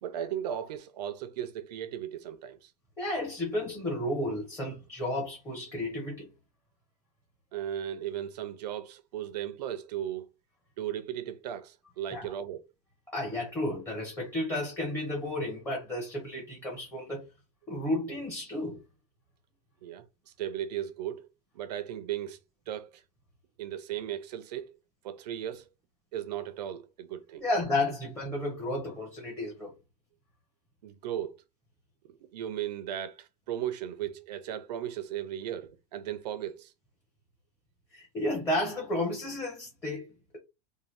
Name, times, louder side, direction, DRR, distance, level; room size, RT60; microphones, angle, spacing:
voice 1, 0.0-2.7 7.5-10.3 10.8-12.6 19.8-20.1 20.4-21.3 21.5-22.4 22.7-23.0 23.6-24.7 25.0-25.6 26.1-27.4 30.8-31.4 32.1-36.7, right 10 dB, 90° right, 0.6 m, -36 dB
voice 2, 3.0-6.3 12.1-12.2 13.1-17.2 17.7-18.8 27.4-29.7 37.9-40.4, left 1 dB, 10° left, 0.6 m, -32 dB
2.7 x 2.2 x 3.1 m
supercardioid pair, 170°, 21 cm